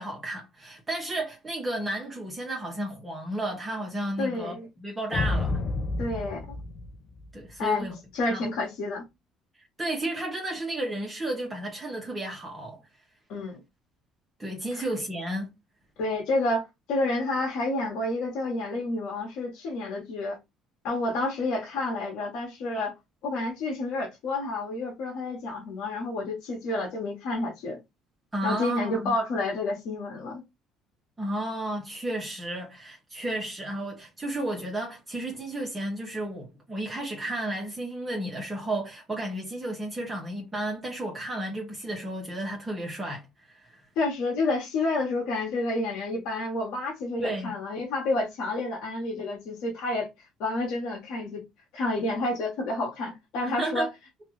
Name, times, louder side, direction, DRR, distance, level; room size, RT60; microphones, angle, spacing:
voice 1, 0.0-5.6 7.3-8.0 8.2-8.4 9.8-12.8 14.4-15.5 28.3-29.2 31.2-43.8 47.2-47.5 51.8-51.9 53.4-53.9, right 1 dB, 20° right, 0.9 m, -33 dB
voice 2, 4.2-4.7 6.0-6.6 7.6-7.9 8.1-9.0 13.3-13.6 14.7-14.9 16.0-20.4 20.8-22.9 23.2-27.8 28.4-30.4 44.0-50.1 50.4-51.4 51.7-53.9, left 2 dB, 75° left, 1.1 m, -29 dB
sound 1, 5.1-7.6, left 3 dB, 40° left, 0.3 m, -30 dB
2.8 x 2.3 x 3.0 m
supercardioid pair, 90°, 0 cm